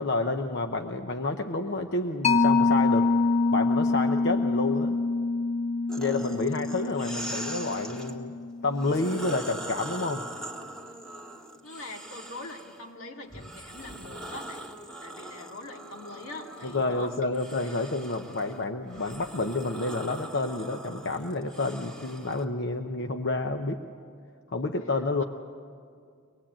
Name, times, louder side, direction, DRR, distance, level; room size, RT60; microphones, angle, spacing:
voice 1, 0.0-3.1 3.5-5.0 6.0-8.3 8.6-10.2 16.6-23.8 24.5-25.2, left 2 dB, 55° left, 5 dB, 0.9 m, -29 dB
Mallet percussion, 2.2-9.3, left 3 dB, 35° left, 0.7 m, -26 dB
sound 1, 5.9-8.1 8.7-12.8 13.3-22.4, right 1 dB, 5° left, 1.7 m, -42 dB
voice 2, 11.6-14.7 15.0-17.1 17.6-17.7, left 2 dB, 80° left, 2 dB, 2.3 m, -43 dB
24.5 x 20.5 x 8.8 m, 2.2 s
head